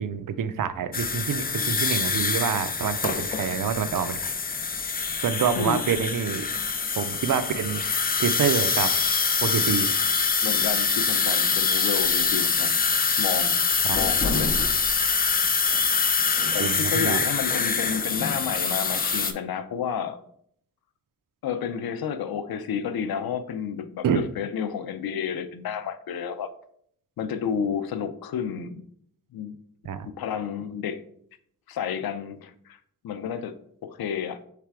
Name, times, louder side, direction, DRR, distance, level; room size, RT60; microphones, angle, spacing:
voice 1, 0.0-4.3 5.2-6.5 7.0-7.8 8.2-8.9 9.4-9.9 13.9-14.0 16.6-17.2 24.0-24.2 29.8-30.1, right 7 dB, 65° right, 11 dB, 0.5 m, -27 dB
sound 1, 0.9-19.3, left 5 dB, 25° left, 0.4 m, -25 dB
voice 2, 10.4-12.8 13.2-13.7 13.9-14.6 16.5-20.2 21.4-26.5 27.2-28.8 29.3-29.6 30.0-31.0 31.7-32.8 33.0-34.4, left 7 dB, 90° left, 11 dB, 0.5 m, -31 dB
3.4 x 3.3 x 4.6 m, 0.66 s
wide cardioid pair, 135°, 35 cm